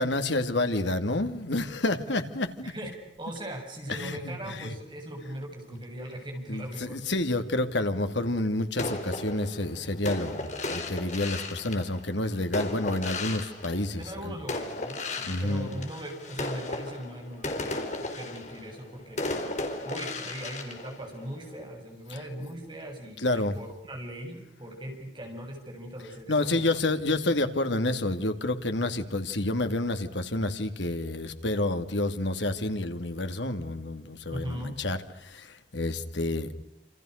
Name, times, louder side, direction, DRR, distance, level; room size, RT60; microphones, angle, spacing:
voice 1, 0.0-2.7 3.9-4.7 6.5-14.4 15.3-15.7 22.1-22.2 23.2-23.6 26.3-36.5, left 2 dB, 80° left, 8 dB, 2.5 m, -29 dB
voice 2, 3.2-7.0 14.0-19.2 19.8-26.8 34.3-34.7, equal, 25° right, 2 dB, 7.5 m, -39 dB
sound 1, 8.8-14.1 14.5-21.6, left 2 dB, 40° left, 4.3 m, -35 dB
28.5 x 27.5 x 6.5 m, 0.81 s
head